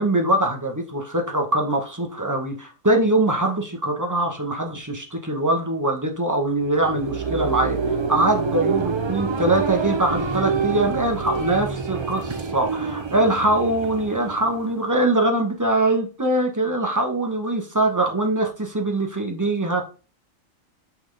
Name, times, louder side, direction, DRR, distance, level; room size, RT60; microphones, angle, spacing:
voice 1, 0.0-7.8 8.1-19.8, right 1 dB, 15° right, 2 dB, 1.0 m, -22 dB
sound 1, 6.5-15.2, right 5 dB, 45° right, 0.3 m, -27 dB
5.7 x 5.5 x 3.4 m, 0.35 s
omnidirectional pair, 1.4 m